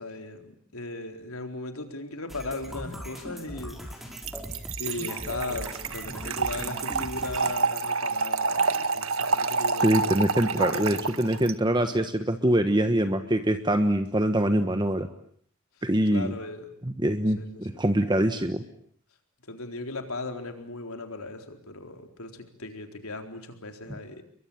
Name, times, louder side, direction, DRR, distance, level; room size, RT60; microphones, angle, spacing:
voice 1, 0.0-4.1 4.8-11.1 16.1-16.7 17.4-17.8 19.5-24.2, left 2 dB, 85° left, 5 dB, 4.0 m, -37 dB
sound 1, 2.3-7.5, equal, ahead, 5.4 m, -39 dB
Trickle dribble / Fill (with liquid), 4.2-11.5, right 4 dB, 80° right, 1.7 m, -28 dB
voice 2, 9.8-15.1 15.8-16.3 16.8-18.6, right 1 dB, 20° right, 8 dB, 1.3 m, -24 dB
30.0 x 22.5 x 8.8 m, 0.63 s
head